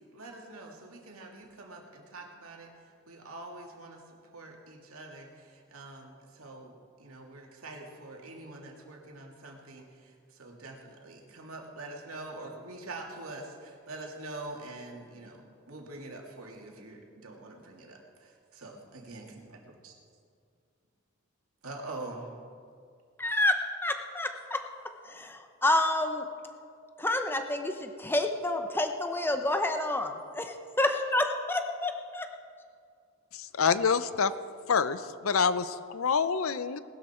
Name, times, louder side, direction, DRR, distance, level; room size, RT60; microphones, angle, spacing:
voice 1, 0.1-2.7 3.1-19.9 21.6-22.3, right 2 dB, 90° right, 0 dB, 2.5 m, -45 dB
voice 2, 23.2-24.6 25.0-26.2 27.0-32.3, left 1 dB, 10° left, 6 dB, 0.8 m, -29 dB
voice 3, 33.3-34.3 34.7-36.8, left 6 dB, 75° left, 14 dB, 0.6 m, -27 dB
19.5 x 12.5 x 4.4 m, 2.2 s
head